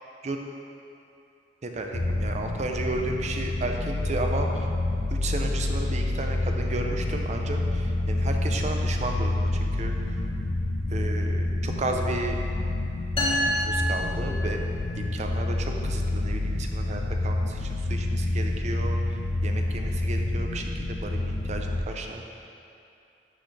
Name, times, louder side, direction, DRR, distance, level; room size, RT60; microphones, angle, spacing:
voice 1, 1.6-4.7 5.1-9.9 10.9-12.4 13.5-14.6 15.0-19.0 19.4-22.5, right 2 dB, 40° right, 3 dB, 0.5 m, -33 dB
sound 1, 1.9-21.8, left 2 dB, 85° left, 0.8 m, -28 dB
sound 2, 13.2-14.9, equal, 35° left, 1.3 m, -28 dB
11.5 x 4.0 x 3.3 m, 2.6 s
head